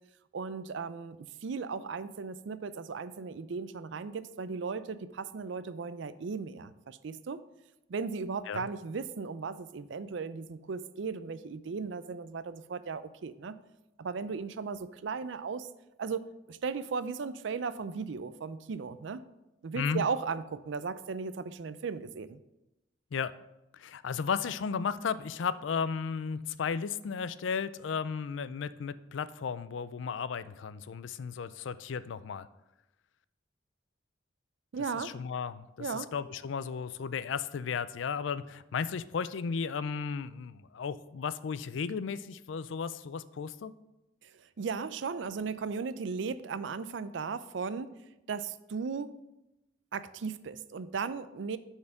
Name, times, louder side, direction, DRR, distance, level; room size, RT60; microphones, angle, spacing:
voice 1, 0.3-7.4 7.9-13.6 14.0-15.7 16.0-19.3 19.6-22.4 34.7-35.2 35.8-36.1 44.2-48.0 48.3-49.2 49.9-51.6, right 5 dB, 70° right, 14 dB, 0.4 m, -36 dB
voice 2, 19.7-20.0 23.1-23.3 23.7-32.5 34.9-43.7, left 6 dB, 75° left, 15 dB, 0.4 m, -34 dB
8.4 x 4.5 x 5.8 m, 0.94 s
head